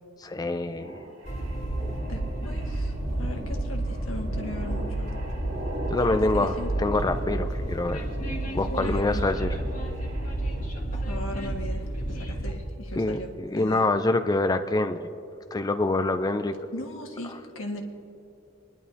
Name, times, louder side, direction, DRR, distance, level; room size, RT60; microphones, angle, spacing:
voice 1, 0.2-1.0 1.8-1.9 5.9-8.1 8.5-9.6 13.0-15.1 15.5-16.5, left 2 dB, 20° left, 9 dB, 0.4 m, -26 dB
sound 1, 0.8-10.7, right 1 dB, 90° right, 3.1 m, -41 dB
Train, 1.3-12.5, right 1 dB, 40° left, 1.7 m, -31 dB
voice 2, 2.1-5.1 5.9-6.7 8.7-9.3 11.0-13.3 13.6-13.9 16.7-17.8, left 1 dB, 90° left, 2 dB, 1.6 m, -38 dB
25.5 x 11.0 x 2.7 m, 2.7 s
head